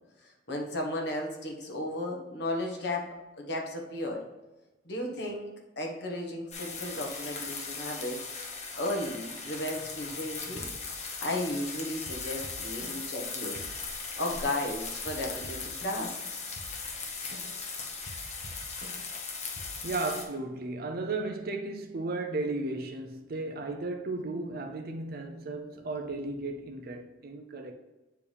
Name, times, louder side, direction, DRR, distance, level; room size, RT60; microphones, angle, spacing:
voice 1, 0.2-4.2 4.8-8.2 8.5-10.7 11.2-13.6 14.2-16.4, left 1 dB, 65° left, 1.3 m, -35 dB
sound 1, 6.5-20.2, left 4 dB, 40° left, 1.1 m, -38 dB
sound 2, 10.6-11.7 12.1-14.7 15.1-16.2 16.5-19.2 19.6-20.2, equal, 85° left, 1.2 m, -48 dB
voice 2, 19.8-27.7, right 2 dB, 55° right, 0.6 m, -35 dB
8.4 x 4.7 x 3.4 m
head